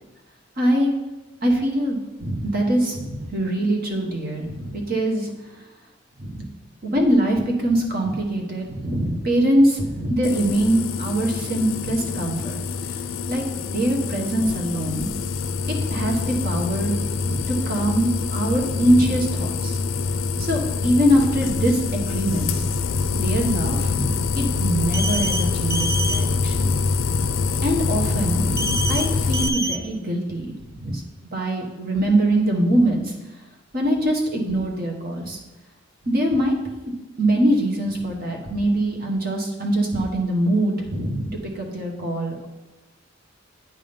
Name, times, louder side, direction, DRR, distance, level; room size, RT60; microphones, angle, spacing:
voice 1, 0.6-1.0 1.4-5.5 6.2-6.5 6.8-13.0 13.3-13.5 13.7-15.1 15.7-17.0 17.2-19.8 20.4-22.6 23.1-26.7 27.6-31.0 31.3-33.1 33.7-35.4 36.0-36.7 37.2-41.3 41.5-42.5, right 1 dB, 50° right, 1 dB, 1.3 m, -23 dB
sound 1, 10.2-29.5, left 4 dB, 80° left, 0.4 m, -25 dB
sound 2, 24.9-25.4 25.7-26.2 28.6-29.1 29.3-29.8, right 2 dB, 15° right, 0.4 m, -26 dB
9.2 x 3.7 x 5.2 m, 1.1 s
head